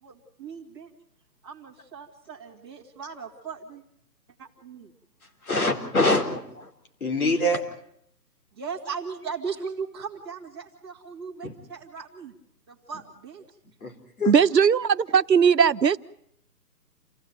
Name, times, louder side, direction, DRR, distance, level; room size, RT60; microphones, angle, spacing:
voice 1, 0.0-0.9 1.4-3.8 4.4-4.9 8.5-12.3 12.7-13.4, right 5 dB, 15° right, -5 dB, 2.3 m, -38 dB
voice 2, 5.4-6.7 7.0-7.6 11.4-11.5 13.8-14.3, left 1 dB, 60° left, 4 dB, 4.5 m, -25 dB
voice 3, 14.3-16.0, right 7 dB, 90° right, 12 dB, 1.1 m, -19 dB
28.5 x 17.5 x 9.4 m, 0.71 s
hypercardioid pair, 175°, 49 cm